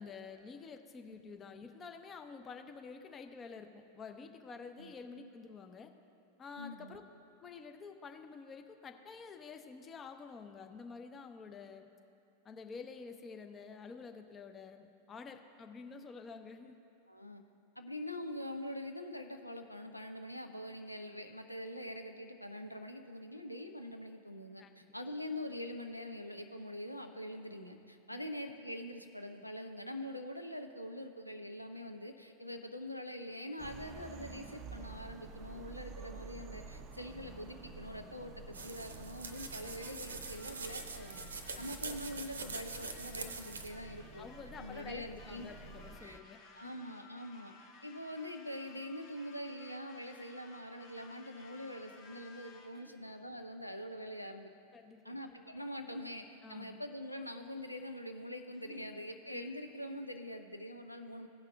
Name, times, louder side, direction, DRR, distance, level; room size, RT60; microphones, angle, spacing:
voice 1, 0.0-5.9 6.4-7.0 7.4-11.9 12.4-16.8 24.6-24.7 28.1-28.3 41.5-41.7 44.2-46.4 46.7-46.9 53.0-53.1 54.7-55.0 56.4-56.8 58.5-59.0 59.3-59.6, left 5 dB, 20° left, 6 dB, 0.6 m, -49 dB
voice 2, 6.6-7.0 17.1-17.4 17.8-41.3 41.6-44.3 44.6-45.5 46.0-46.2 46.6-47.5 47.8-54.5 55.0-61.3, left 1 dB, 90° left, 5 dB, 0.5 m, -44 dB
sound 1, 33.6-46.2, right 4 dB, 35° right, 0.5 m, -50 dB
sound 2, 38.5-43.7, right 4 dB, 70° right, 0.7 m, -44 dB
sound 3, 39.2-52.9, left 4 dB, 45° left, 1.3 m, -58 dB
16.5 x 5.8 x 3.4 m, 2.6 s
figure-of-eight pair, 90°, 0 cm